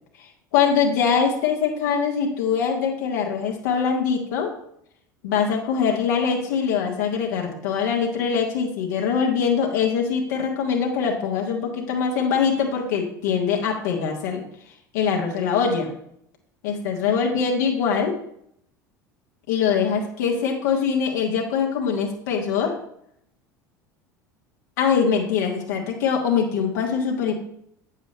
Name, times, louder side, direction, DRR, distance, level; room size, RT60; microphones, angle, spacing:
voice 1, 0.5-4.5 5.2-14.4 14.9-15.9 16.6-18.1 19.5-22.7 24.8-27.3, left 6 dB, 65° left, 0 dB, 1.5 m, -23 dB
8.5 x 7.3 x 3.1 m, 0.71 s
figure-of-eight pair, 70°, 10 cm